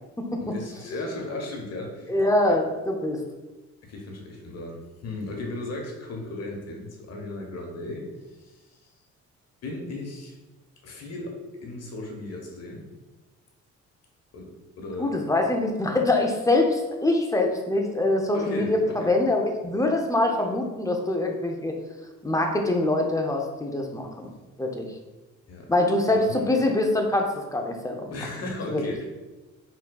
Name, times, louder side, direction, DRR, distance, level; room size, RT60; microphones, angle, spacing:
voice 1, 0.4-2.1 3.8-8.1 8.4-8.6 9.6-10.4 10.8-12.9 14.3-15.2 18.3-19.1 25.5-25.7 26.1-26.5 28.1-29.0, left 2 dB, 55° left, 1 dB, 1.0 m, -36 dB
voice 2, 2.1-3.2 15.0-18.8 19.1-21.7 22.2-24.3 24.6-24.9 25.7-28.1 28.7-28.8, left 2 dB, 10° left, 2 dB, 0.6 m, -24 dB
4.3 x 3.8 x 2.3 m, 1.1 s
cardioid pair, 90°, 30 cm